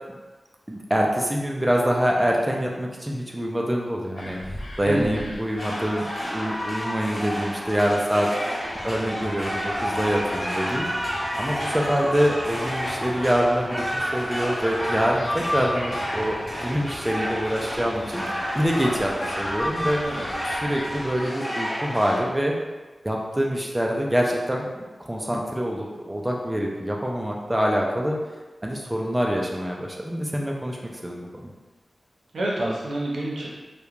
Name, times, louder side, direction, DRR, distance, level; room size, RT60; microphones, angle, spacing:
voice 1, 0.7-10.9 11.4-20.0 20.6-22.5 23.0-28.2 28.6-30.8 31.0-31.3, equal, 10° right, -1 dB, 0.3 m, -25 dB
sound 1, 4.2-21.2, left 1 dB, 55° left, 0.5 m, -42 dB
voice 2, 4.8-5.3 20.0-20.3 32.3-33.5, right 1 dB, 85° right, -4 dB, 0.6 m, -27 dB
sound 2, 5.6-22.2, equal, 25° left, 1.0 m, -30 dB
2.9 x 2.1 x 2.4 m, 1.2 s
wide cardioid pair, 80°, 0 cm